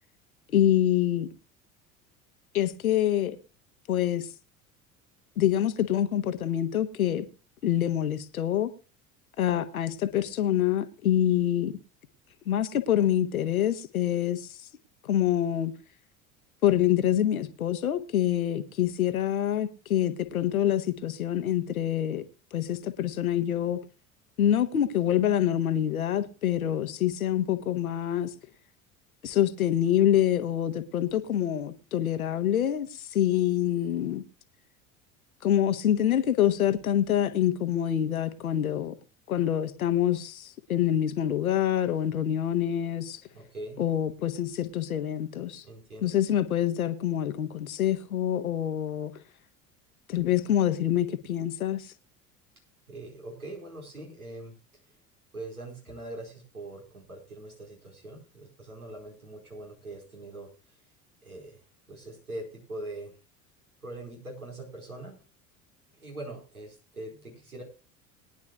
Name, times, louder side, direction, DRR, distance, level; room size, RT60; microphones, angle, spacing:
voice 1, 0.5-1.3 2.5-3.4 3.9-4.3 5.4-7.3 7.6-8.7 9.4-11.7 12.5-14.5 15.0-15.7 16.6-22.2 22.5-23.8 24.4-28.3 29.2-34.2 35.4-38.9 39.3-43.2 43.8-45.6 46.0-49.1 50.1-51.9, left 11 dB, 75° left, 1.2 m, -26 dB
voice 2, 43.3-43.8 45.6-46.2 52.9-54.5 55.3-60.5 61.2-61.6 61.9-63.1 63.8-65.2 66.0-67.6, right 2 dB, 85° right, 4.8 m, -42 dB
21.5 x 10.5 x 2.4 m
figure-of-eight pair, 70°, 43 cm